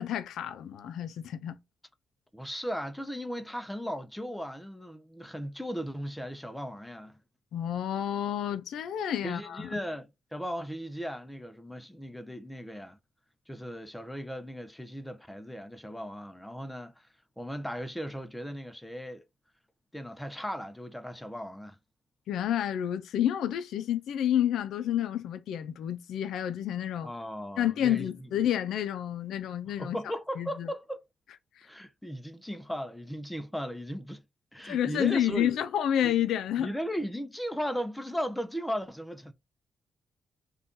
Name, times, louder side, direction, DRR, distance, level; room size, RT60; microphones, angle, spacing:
voice 1, 0.0-1.6 7.5-9.7 22.3-27.1 27.6-30.0 30.4-30.7 31.6-31.7 34.7-36.7, left 10 dB, 90° left, 0.4 m, -29 dB
voice 2, 2.3-7.2 9.2-13.0 13.5-17.1 17.4-19.2 19.9-21.8 27.0-28.1 29.8-31.0 31.6-34.2 34.5-35.5 36.0-36.1 36.6-39.3, equal, 5° left, 0.5 m, -37 dB
2.6 x 2.3 x 3.6 m
cardioid pair, 100°, 0 cm